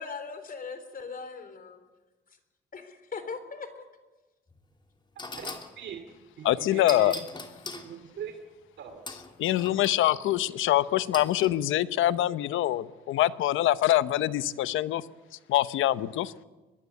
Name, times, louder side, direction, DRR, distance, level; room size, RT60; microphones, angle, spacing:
voice 1, 0.0-1.8 2.7-3.7, left 5 dB, 45° left, 10 dB, 3.7 m, -39 dB
sound 1, 4.5-4.6 5.2-5.7 6.9-7.9 9.1-10.0 11.1-11.5, left 2 dB, 25° left, 3.1 m, -40 dB
voice 2, 5.4-6.0 6.4-7.1 7.7-8.3 8.8-9.0, right 8 dB, 65° right, 7 dB, 2.6 m, -40 dB
voice 3, 6.4-7.1 9.1-15.1 15.5-16.3, left 14 dB, 85° left, 15 dB, 0.9 m, -25 dB
24.0 x 20.5 x 8.2 m, 1.2 s
cardioid pair, 90°, 20 cm